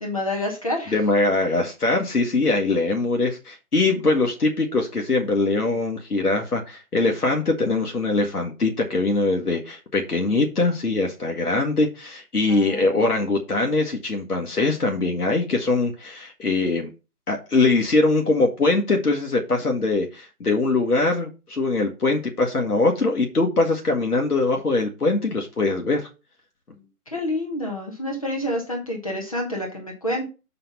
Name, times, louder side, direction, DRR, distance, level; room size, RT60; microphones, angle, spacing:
voice 1, 0.0-1.0 12.5-13.1 27.1-30.2, left 1 dB, 25° left, 0 dB, 1.1 m, -28 dB
voice 2, 0.9-16.9 17.3-26.1, left 3 dB, 80° left, 2 dB, 1.6 m, -22 dB
6.6 x 4.3 x 5.5 m, 0.31 s
figure-of-eight pair, 160°, 45 cm